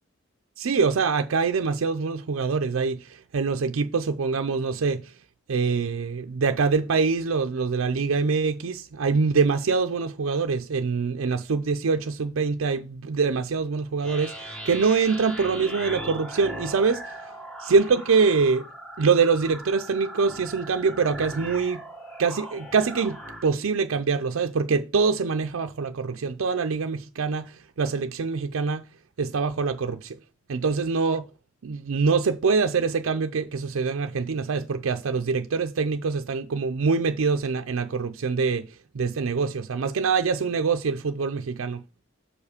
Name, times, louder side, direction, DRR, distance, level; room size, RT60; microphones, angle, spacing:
voice 1, 0.6-5.1 5.5-17.2 17.6-18.7 19.0-21.8 22.2-28.8 29.2-30.2 30.5-31.3 31.6-38.7 38.9-41.8, right 5 dB, 75° right, 0.5 m, -24 dB
sound 1, 14.0-23.5, right 1 dB, 5° left, 1.2 m, -39 dB
7.2 x 5.1 x 4.9 m
head